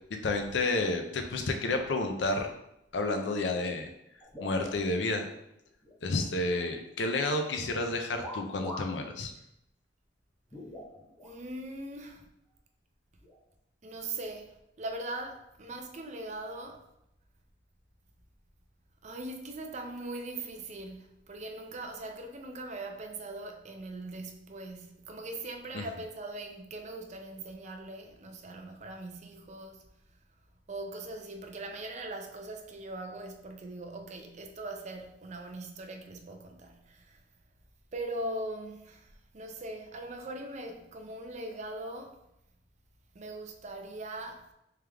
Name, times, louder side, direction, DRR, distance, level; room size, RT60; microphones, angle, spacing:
voice 1, 0.2-2.5 2.9-3.9 4.4-5.3 6.0-9.3 25.7-25.8, left 2 dB, 70° left, 0.5 m, -30 dB
sound 1, 4.2-5.3 5.6-6.7 7.1-7.4 8.2-9.0 9.4-9.5 10.5-11.3 12.2-12.3 13.2-13.4, left 1 dB, 15° left, 0.8 m, -44 dB
voice 2, 11.2-12.2 13.8-16.8 19.0-29.8 30.7-37.2 37.9-42.2 43.1-44.5, right 2 dB, 40° right, 0.5 m, -41 dB
3.4 x 3.4 x 3.4 m
head